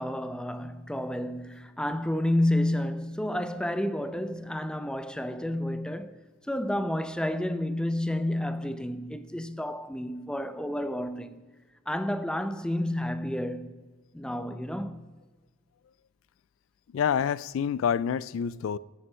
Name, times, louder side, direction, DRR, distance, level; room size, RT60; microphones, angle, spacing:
voice 1, 0.0-6.2 6.5-11.3 11.9-13.7 14.1-15.0, left 1 dB, 5° left, 0.5 m, -30 dB
voice 2, 16.9-18.8, left 7 dB, 80° left, 0.3 m, -27 dB
12.0 x 7.9 x 5.5 m
head